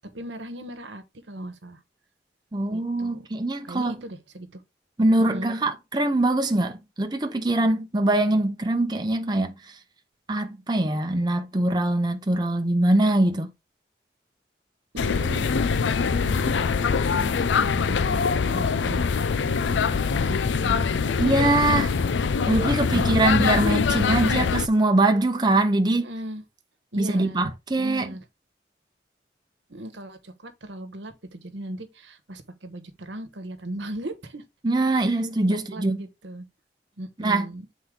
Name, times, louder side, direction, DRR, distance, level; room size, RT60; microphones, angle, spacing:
voice 1, 0.1-1.8 2.7-3.2 3.6-4.6 5.2-5.5 14.9-15.9 16.1-16.5 16.9-21.6 22.9-24.5 26.0-26.4 26.9-27.4 27.8-28.2 29.7-34.4 34.9-35.2 35.5-36.4 37.0-37.7, right 1 dB, 90° right, 1.2 m, -38 dB
voice 2, 2.5-3.9 5.0-9.8 10.3-13.5 21.2-22.0 22.5-26.0 27.0-28.1 34.6-36.0 37.2-37.5, right 2 dB, 25° right, 0.7 m, -23 dB
sound 1, 15.0-24.7, left 5 dB, 85° left, 0.5 m, -23 dB
7.7 x 4.1 x 3.7 m
head